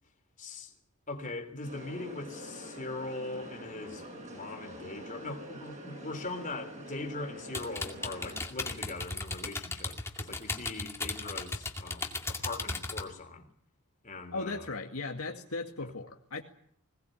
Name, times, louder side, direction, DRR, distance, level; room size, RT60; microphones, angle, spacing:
voice 1, 0.4-0.7 1.1-13.4 14.0-14.7 15.8-15.9, left 2 dB, 35° left, 3.5 m, -41 dB
sound 1, 1.6-8.4, right 1 dB, 35° right, 7.1 m, -46 dB
sound 2, 7.5-13.0, left 2 dB, 10° left, 2.3 m, -36 dB
voice 2, 14.3-16.4, left 3 dB, 70° left, 2.1 m, -37 dB
21.5 x 19.0 x 9.1 m
head